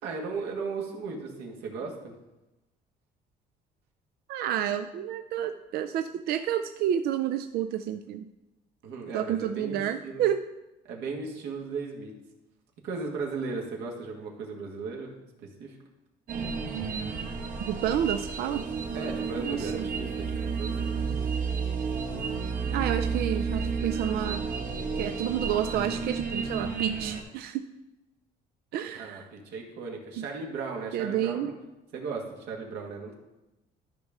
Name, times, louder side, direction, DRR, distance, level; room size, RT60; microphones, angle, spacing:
voice 1, 0.0-2.1 8.8-10.2 10.9-12.1 12.8-15.8 18.9-21.1 29.0-31.5 31.9-33.1, right 4 dB, 85° right, 0 dB, 1.8 m, -36 dB
voice 2, 4.3-8.3 9.1-10.4 17.7-18.6 19.4-19.9 22.7-24.4 25.0-27.6 28.7-29.3 30.2-30.3 30.9-31.5, right 10 dB, 70° right, 8 dB, 0.5 m, -30 dB
sound 1, 16.3-27.2, right 5 dB, 50° right, 1.3 m, -31 dB
13.0 x 5.3 x 3.6 m, 0.99 s
cardioid pair, 110°, 17 cm